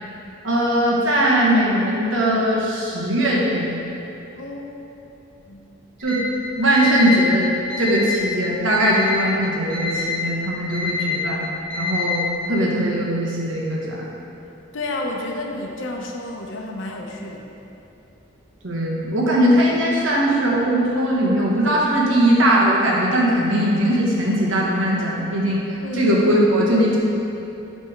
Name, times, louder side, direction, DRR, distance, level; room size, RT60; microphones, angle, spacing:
voice 1, 0.4-3.7 6.0-6.2 6.6-7.5 7.8-11.5 11.8-12.2 12.5-14.0 18.6-27.0, right 1 dB, 75° right, -4 dB, 1.2 m, -20 dB
voice 2, 4.3-4.8 5.5-5.7 14.7-17.4 25.8-26.1, left 2 dB, 70° left, 1 dB, 0.7 m, -31 dB
Alarm, 6.0-6.2 6.7-7.2 7.7-8.2 8.7-9.2 9.7-10.2 10.7-11.2 11.7-12.2, left 5 dB, 5° left, 1.5 m, -25 dB
8.2 x 3.5 x 4.6 m, 2.9 s
head